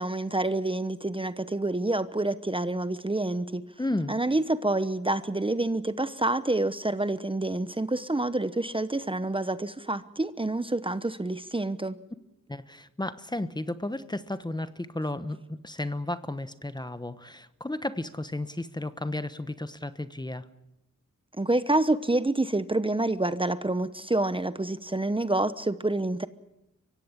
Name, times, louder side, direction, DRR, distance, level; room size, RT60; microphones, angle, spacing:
voice 1, 0.0-3.6 4.1-12.0 21.4-26.3, right 2 dB, 15° right, 13 dB, 1.0 m, -27 dB
voice 2, 3.8-4.1 12.5-20.5, left 1 dB, 15° left, 13 dB, 1.1 m, -33 dB
24.0 x 16.5 x 8.9 m, 0.91 s
cardioid pair, 75°, 31 cm